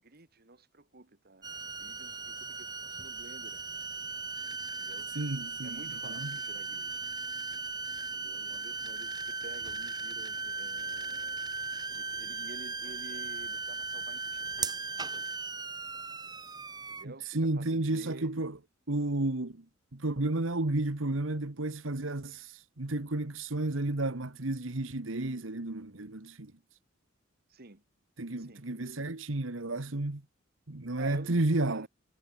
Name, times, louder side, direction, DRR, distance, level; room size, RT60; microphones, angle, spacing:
voice 1, 0.0-1.5 1.8-3.8 4.8-5.1 5.6-7.0 8.1-11.4 11.9-14.7 16.9-18.3 27.5-27.8 28.4-28.7 31.0-31.9, right 2 dB, 50° right, 2.0 m, -51 dB
sound 1, 1.4-17.0, right 4 dB, 20° right, 2.1 m, -37 dB
voice 2, 5.1-5.8 6.0-6.4 17.0-18.6 18.9-19.6 19.9-26.5 28.2-30.2 30.7-31.9, right 2 dB, 70° right, 1.5 m, -32 dB
head